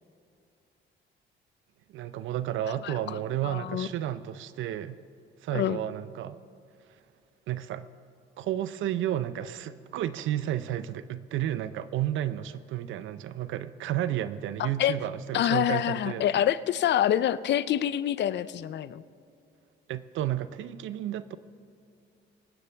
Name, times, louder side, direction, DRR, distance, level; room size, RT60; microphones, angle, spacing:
voice 1, 1.9-5.0 5.4-6.4 7.5-7.9 8.4-16.2 19.9-21.4, right 12 dB, 80° right, 15 dB, 0.6 m, -32 dB
voice 2, 2.8-3.2 3.4-3.9 5.5-5.8 14.6-14.9 15.3-19.0, left 11 dB, 60° left, 16 dB, 0.5 m, -26 dB
24.5 x 9.9 x 3.5 m, 2.5 s
cardioid pair, 90°, 20 cm